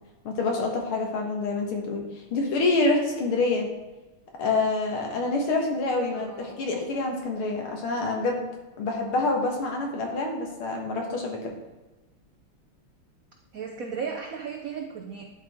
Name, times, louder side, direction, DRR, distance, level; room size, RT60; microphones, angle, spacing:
voice 1, 0.3-2.0 2.3-3.7 4.4-8.5 8.8-11.4, left 3 dB, 75° left, 1 dB, 2.2 m, -26 dB
voice 2, 6.1-6.6 13.5-15.2, right 6 dB, 80° right, 2 dB, 0.7 m, -35 dB
10.5 x 4.6 x 3.5 m, 1.1 s
omnidirectional pair, 2.4 m